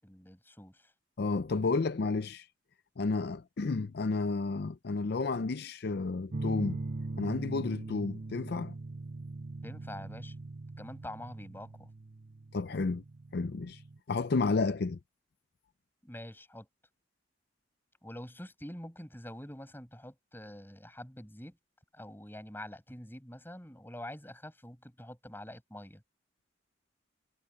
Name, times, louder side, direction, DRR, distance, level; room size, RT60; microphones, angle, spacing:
voice 1, 0.0-0.9 9.6-10.3 10.8-11.9 16.0-16.7 18.0-21.6 21.9-26.0, left 1 dB, 10° left, 6.8 m, -46 dB
voice 2, 1.2-2.5 3.0-6.8 7.2-8.7 12.5-13.0 13.3-13.8 14.1-15.0, left 3 dB, 60° left, 0.5 m, -31 dB
sound 1, 6.3-14.0, right 2 dB, 45° right, 0.9 m, -41 dB
head